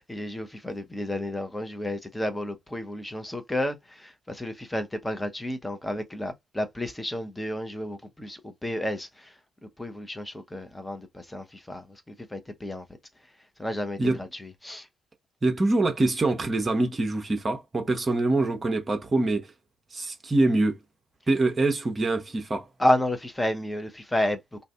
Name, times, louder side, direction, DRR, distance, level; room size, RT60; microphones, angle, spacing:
voice 1, 0.0-9.3 9.8-11.9 12.3-12.8 13.6-14.9 22.8-24.4, left 1 dB, 10° left, 0.7 m, -31 dB
voice 2, 15.4-19.5 19.9-20.8 21.3-22.7, right 2 dB, 25° right, 0.7 m, -24 dB
2.5 x 2.4 x 2.3 m
figure-of-eight pair, 45°, 0 cm